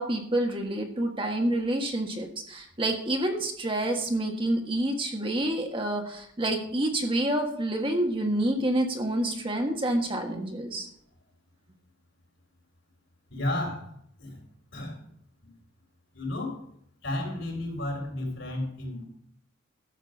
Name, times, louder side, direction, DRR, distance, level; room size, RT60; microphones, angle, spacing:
voice 1, 0.0-10.9, right 1 dB, 25° right, 2 dB, 1.5 m, -28 dB
voice 2, 13.3-13.9 14.2-14.4 14.7-15.1 15.4-15.5 16.1-16.6 17.0-19.0, left 1 dB, 60° left, 1 dB, 4.4 m, -32 dB
13.0 x 7.8 x 5.3 m, 0.66 s
head